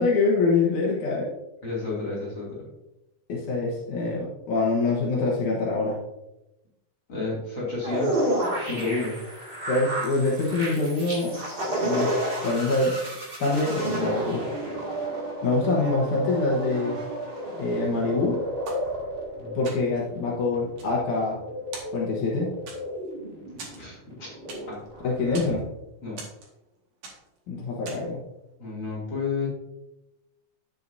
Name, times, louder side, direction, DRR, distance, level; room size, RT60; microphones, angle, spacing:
voice 1, 0.0-1.3 3.3-6.0 9.7-11.4 11.8-12.1 12.4-12.9 13.4-14.4 15.4-17.0 17.6-18.4 19.5-21.4 21.9-22.5 25.0-25.6 27.5-28.2, left 3 dB, 75° left, -3 dB, 2.6 m, -25 dB
voice 2, 1.6-2.6 7.1-8.1 8.6-9.1 19.4-19.6 23.3-24.3 24.7-24.8 26.0-26.2 28.6-29.5, left 4 dB, 40° left, -7 dB, 3.3 m, -31 dB
sound 1, 7.8-25.6, right 1 dB, 20° right, 1.8 m, -31 dB
sound 2, 18.7-19.3 19.6-20.1 20.6-21.4 21.7-22.3 22.7-23.1 23.6-24.9 25.2-25.6 26.2-26.7 27.0-27.4 27.9-28.2, right 3 dB, 65° right, 3.0 m, -42 dB
10.0 x 7.8 x 2.7 m, 0.94 s
omnidirectional pair, 3.5 m